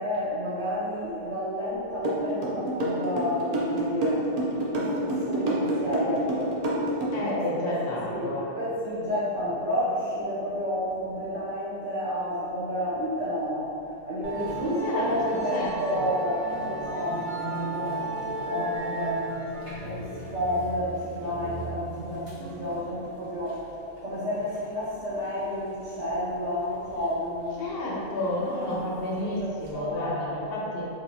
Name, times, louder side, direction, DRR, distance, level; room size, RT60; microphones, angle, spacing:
voice 1, 0.0-6.7 7.3-13.7 14.0-19.2 19.8-23.6 24.0-27.7 28.5-29.1 29.4-30.5, equal, 65° right, -10 dB, 1.0 m, -31 dB
sound 1, 2.0-7.3, right 1 dB, 85° right, 0.3 m, -27 dB
voice 2, 7.1-8.5 14.6-15.2 15.5-16.1 27.6-30.9, left 1 dB, 65° left, -5 dB, 0.6 m, -31 dB
Musical instrument, 14.2-29.7, right 2 dB, 35° right, 0.5 m, -37 dB
3.2 x 2.7 x 2.6 m, 2.7 s
omnidirectional pair, 1.4 m